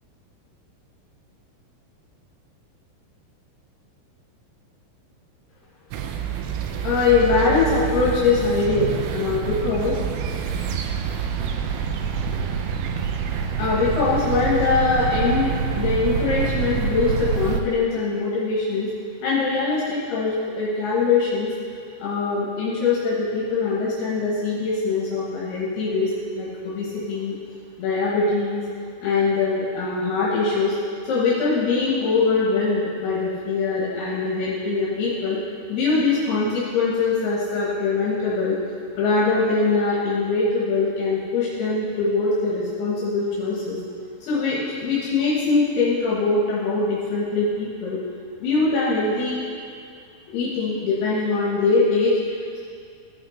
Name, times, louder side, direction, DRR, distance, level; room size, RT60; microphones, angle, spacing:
sound 1, 5.9-17.6, right 7 dB, 80° right, 2.2 m, -26 dB
voice 1, 6.8-10.0 13.6-18.9 19.2-21.5 22.0-27.3 27.8-28.6 29.0-30.8 31.1-35.4 35.7-38.6 39.0-43.8 44.2-48.0 48.4-49.4 50.3-52.2, left 4 dB, 80° left, -7 dB, 3.2 m, -22 dB
15.5 x 5.8 x 3.3 m, 2.2 s
omnidirectional pair, 4.7 m